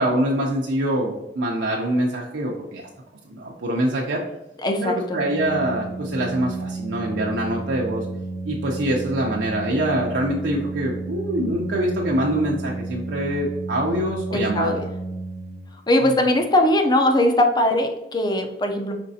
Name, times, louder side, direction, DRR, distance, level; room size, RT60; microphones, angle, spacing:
voice 1, 0.0-2.9 3.3-4.2 4.8-8.1 8.4-14.8, right 1 dB, 85° right, -2 dB, 0.6 m, -24 dB
voice 2, 4.6-5.2 14.3-14.9 15.9-18.9, left 1 dB, 25° left, 4 dB, 0.5 m, -20 dB
Organ, 5.1-15.9, right 2 dB, 70° left, 1.5 m, -32 dB
5.1 x 3.2 x 2.7 m, 0.92 s
head